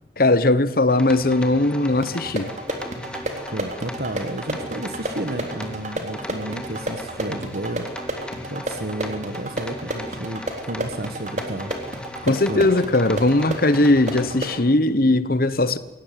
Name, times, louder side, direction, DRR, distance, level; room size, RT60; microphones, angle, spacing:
voice 1, 0.2-2.5 12.2-15.8, left 2 dB, 50° left, 1.2 m, -19 dB
sound 1, 0.9-14.6, left 1 dB, 5° left, 1.9 m, -38 dB
sound 2, 2.0-14.6, right 1 dB, 40° right, 3.3 m, -32 dB
voice 2, 3.5-7.9 8.1-8.2 8.5-11.7 12.2-12.8, right 1 dB, 55° right, 1.4 m, -32 dB
24.0 x 17.5 x 9.4 m
head